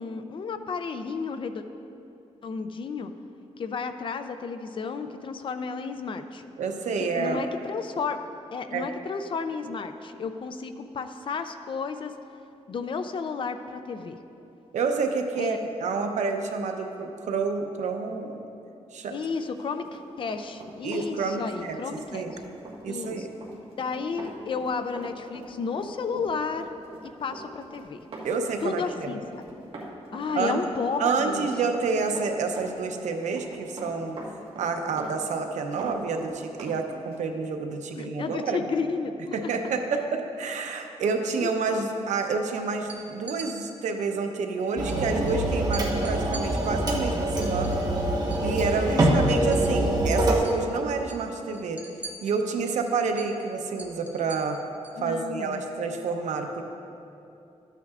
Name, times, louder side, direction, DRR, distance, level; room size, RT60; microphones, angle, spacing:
voice 1, 0.0-1.6 2.4-3.1 3.6-6.4 7.0-8.2 8.5-12.1 12.7-14.2 15.4-15.7 19.1-22.2 22.9-23.3 23.8-26.7 27.0-28.0 28.6-29.4 30.1-31.5 37.9-39.5 41.4-41.5 48.9-49.3 55.0-55.6, left 5 dB, 45° left, 9 dB, 0.4 m, -32 dB
voice 2, 6.6-7.5 8.7-8.9 14.7-18.5 18.9-19.2 20.8-21.8 22.1-22.3 22.8-23.3 28.2-29.1 30.4-30.6 31.0-34.2 34.6-38.6 39.3-47.8 48.4-51.8 52.2-54.6 55.0-56.6, right 4 dB, 90° right, 5 dB, 0.7 m, -29 dB
Run, 19.7-36.8 37.1-37.3, right 2 dB, 50° right, 1.5 m, -43 dB
sound 1, 42.8-43.5 44.9-45.0 45.3-45.4 45.7-48.5 48.8-50.0 50.2-50.6 50.9-55.0, right 3 dB, 10° right, 0.9 m, -43 dB
sound 2, 44.8-50.3, right 1 dB, 35° right, 1.1 m, -25 dB
13.0 x 9.1 x 2.4 m, 2.8 s
wide cardioid pair, 145°, 12 cm